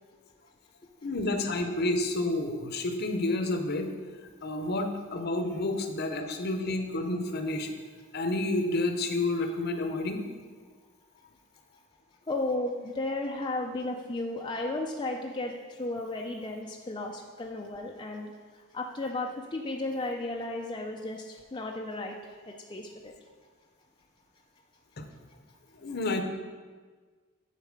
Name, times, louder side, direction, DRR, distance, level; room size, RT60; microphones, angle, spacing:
voice 1, 1.0-3.9 4.4-7.7 8.1-10.2 25.0-25.1 25.7-26.2, left 2 dB, 55° left, 6 dB, 0.8 m, -30 dB
voice 2, 12.3-15.5 15.8-18.3 18.7-21.2 21.5-22.2 22.7-23.1, left 2 dB, 25° left, 1 dB, 0.5 m, -34 dB
8.4 x 4.2 x 6.6 m, 1.5 s
head